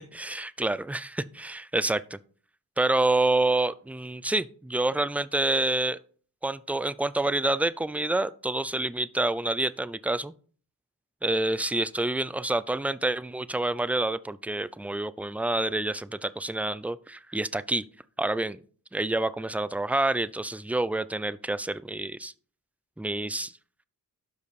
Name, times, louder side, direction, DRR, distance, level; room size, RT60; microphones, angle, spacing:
voice 1, 0.1-2.2 2.8-6.0 6.4-10.3 11.2-17.8 18.2-18.6 18.9-22.3 23.0-23.5, right 2 dB, 5° right, 16 dB, 0.4 m, -28 dB
12.0 x 5.2 x 4.2 m, 0.43 s
cardioid pair, 65°, 36 cm